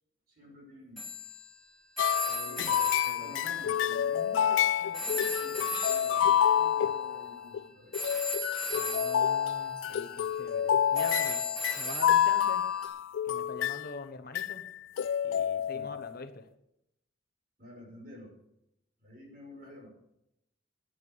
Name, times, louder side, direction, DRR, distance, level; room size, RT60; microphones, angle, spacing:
voice 1, 0.3-1.1 2.4-2.9 3.2-7.9 15.7-15.9 17.6-18.3 19.0-19.9, left 1 dB, 50° right, -1 dB, 5.8 m, -50 dB
Telephone, 1.0-4.6 4.9-12.9, left 1 dB, ahead, 1.7 m, -39 dB
sound 1, 2.0-7.7 7.9-13.9 14.3-14.7 15.0-16.2, left 9 dB, 85° left, 0.3 m, -28 dB
voice 2, 2.3-2.8 3.1-3.4 8.7-11.4 11.8-12.6 13.2-14.6 15.2-16.5, left 3 dB, 55° left, 8 dB, 1.0 m, -44 dB
10.5 x 10.5 x 6.9 m, 0.81 s
head